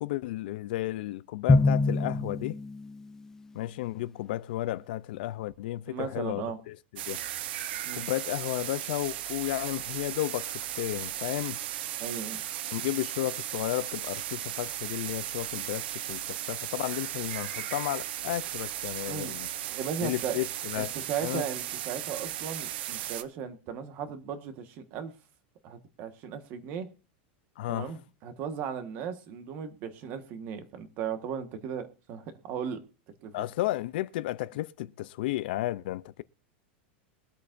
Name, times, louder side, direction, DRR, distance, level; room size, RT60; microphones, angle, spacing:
voice 1, 0.0-2.6 3.5-6.8 7.1-7.2 7.9-11.6 12.7-19.5 20.0-20.9 21.2-21.5 27.6-27.9 33.3-36.2, left 16 dB, 55° left, 0.5 m, -33 dB
Drum, 1.5-3.2, left 3 dB, 10° left, 0.6 m, -24 dB
voice 2, 5.9-6.6 7.8-8.1 12.0-12.4 19.1-19.3 19.7-20.4 20.7-25.1 25.6-26.9 27.7-32.8 33.2-33.3, right 7 dB, 35° right, 1.4 m, -36 dB
sound 1, 7.0-23.2, right 12 dB, 60° right, 0.9 m, -36 dB
22.5 x 8.3 x 2.6 m
supercardioid pair, 180°, 6 cm